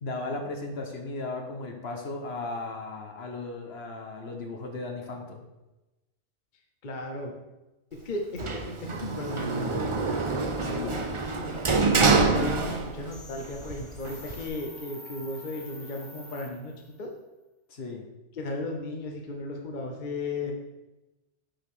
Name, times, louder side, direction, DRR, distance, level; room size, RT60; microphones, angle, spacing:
voice 1, 0.0-5.4 10.6-11.0 17.7-18.1 20.4-20.5, left 2 dB, 60° left, 3 dB, 1.3 m, -36 dB
voice 2, 6.8-7.3 8.0-10.2 11.4-17.1 18.3-20.5, left 2 dB, 45° left, 2 dB, 0.9 m, -35 dB
Sliding door, 8.4-13.2 13.5-14.5, right 4 dB, 35° right, 0.6 m, -26 dB
sound 1, 13.1-17.0, left 1 dB, 25° left, 1.3 m, -47 dB
6.3 x 5.1 x 6.1 m, 1.0 s
omnidirectional pair, 1.2 m